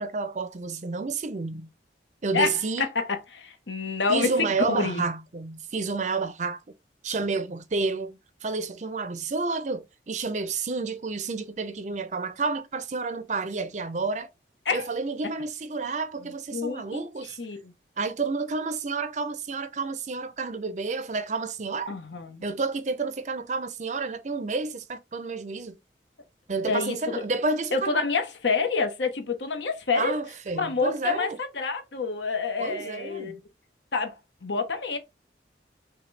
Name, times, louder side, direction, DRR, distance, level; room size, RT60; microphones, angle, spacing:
voice 1, 0.0-1.7 2.2-2.9 4.1-6.6 7.0-14.3 14.7-17.4 18.0-21.9 22.4-25.8 26.5-28.0 30.0-31.4 32.6-33.4, right 4 dB, 40° right, 0.5 m, -30 dB
voice 2, 2.3-5.0 14.6-14.9 16.2-17.7 21.9-22.4 26.6-27.2 27.7-30.1 30.5-33.4 33.9-35.0, left 4 dB, 80° left, 1.0 m, -28 dB
5.7 x 2.3 x 3.2 m
head